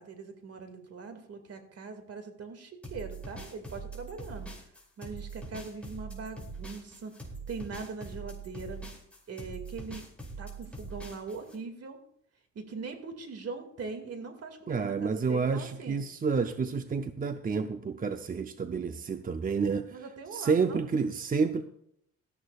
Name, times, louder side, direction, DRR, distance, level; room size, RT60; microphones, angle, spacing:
voice 1, 0.0-4.5 5.0-7.1 7.5-8.8 9.3-10.0 10.4-12.0 12.6-16.0 19.9-20.8, right 4 dB, 55° right, 6 dB, 2.2 m, -41 dB
sound 1, 2.8-11.6, right 3 dB, 5° left, 4.8 m, -43 dB
voice 2, 14.7-20.0 20.3-21.6, right 5 dB, 30° right, 8 dB, 0.6 m, -29 dB
17.5 x 13.5 x 2.4 m, 0.71 s
cardioid pair, 90°, 30 cm